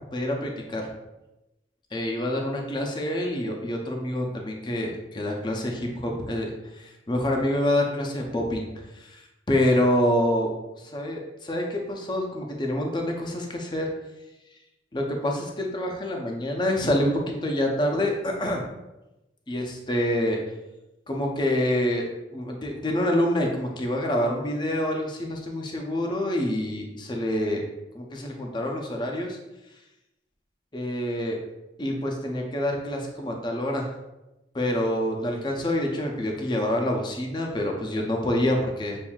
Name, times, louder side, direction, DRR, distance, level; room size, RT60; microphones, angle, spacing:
voice 1, 0.1-0.9 1.9-6.5 6.8-8.7 8.9-10.5 10.9-13.9 14.9-18.6 19.5-20.4 21.1-22.1 22.3-27.6 27.9-29.4 30.7-31.4 31.8-33.9 34.5-39.0, left 1 dB, 25° left, 1 dB, 0.5 m, -26 dB
7.0 x 2.6 x 2.3 m, 0.98 s
head